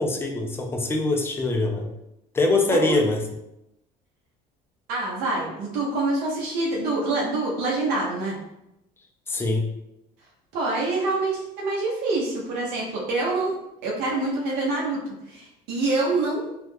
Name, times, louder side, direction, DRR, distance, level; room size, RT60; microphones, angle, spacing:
voice 1, 0.0-1.9 2.3-3.2 9.3-9.7, left 2 dB, 15° left, 2 dB, 0.4 m, -23 dB
voice 2, 4.9-8.4 10.5-13.5 13.8-15.0 15.3-16.4, right 2 dB, 80° right, -4 dB, 0.7 m, -26 dB
2.3 x 2.1 x 3.2 m, 0.86 s
cardioid pair, 120°, 16 cm